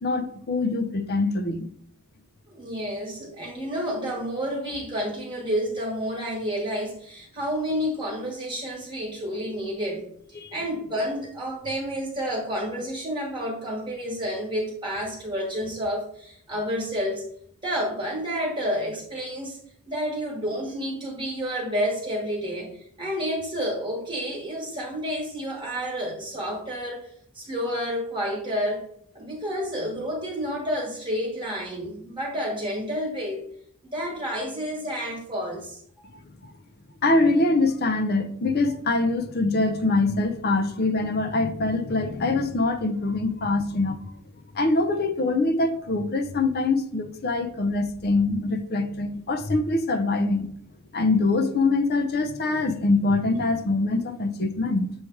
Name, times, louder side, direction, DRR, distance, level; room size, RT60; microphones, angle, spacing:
voice 1, 0.0-1.7 10.4-10.5 36.4-36.5 37.0-44.1 44.5-50.5 50.9-54.9, left 2 dB, 45° left, 0.6 m, -24 dB
voice 2, 2.5-10.0 10.5-17.2 17.6-19.6 19.9-22.7 23.0-27.1 27.3-28.9 29.1-33.5 33.9-35.8, equal, 20° right, 1.3 m, -30 dB
7.1 x 3.3 x 4.5 m
head